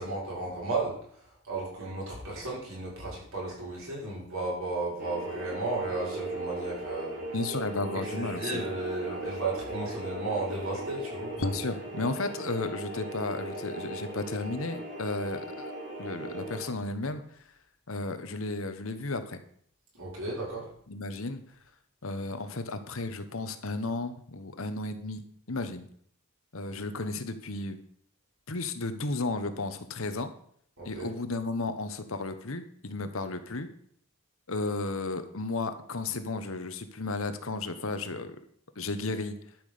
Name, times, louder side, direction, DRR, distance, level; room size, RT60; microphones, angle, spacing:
voice 1, 0.0-7.2 8.0-11.4 20.0-20.7 30.8-31.1, right 2 dB, 70° right, -5 dB, 6.2 m, -34 dB
sound 1, 5.0-16.7, right 1 dB, 50° right, 4.2 m, -38 dB
voice 2, 7.3-8.6 11.4-15.7 16.0-17.2 17.9-19.4 20.9-21.4 22.0-25.9 26.5-27.8 28.5-30.3 30.8-33.7 34.5-38.4 38.8-39.3, left 3 dB, 70° left, 10 dB, 1.2 m, -33 dB
12.0 x 6.1 x 6.8 m, 0.64 s
head